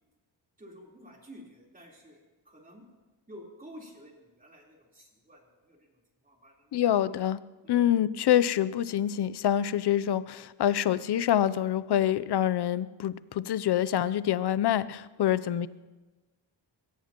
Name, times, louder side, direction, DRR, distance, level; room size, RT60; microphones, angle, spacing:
voice 1, 0.6-2.8 3.3-6.0 6.2-6.7 7.6-7.8 15.2-15.4, equal, 20° right, -2 dB, 3.8 m, -51 dB
voice 2, 6.7-7.4 7.7-15.7, left 11 dB, 60° left, 16 dB, 0.6 m, -26 dB
22.5 x 18.0 x 3.0 m, 1.2 s
wide cardioid pair, 110°, 47 cm